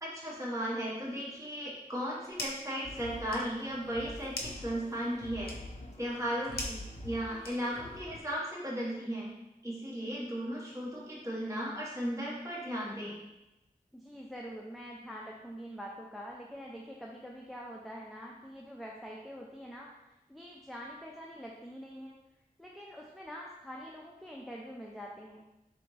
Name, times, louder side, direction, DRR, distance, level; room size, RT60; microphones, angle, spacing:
voice 1, 0.0-5.5 6.0-6.5 7.0-9.3 9.6-13.1, equal, 20° right, -6 dB, 1.3 m, -36 dB
sound 1, 1.9-2.8 3.1-8.0, left 2 dB, 90° left, 0.6 m, -43 dB
sound 2, 2.8-8.2, left 2 dB, 45° left, 0.5 m, -46 dB
voice 2, 6.5-6.8 13.9-19.9 20.3-22.2 22.6-25.4, equal, ahead, -2 dB, 0.5 m, -45 dB
4.0 x 3.4 x 3.2 m, 0.96 s
wide cardioid pair, 65°, 16 cm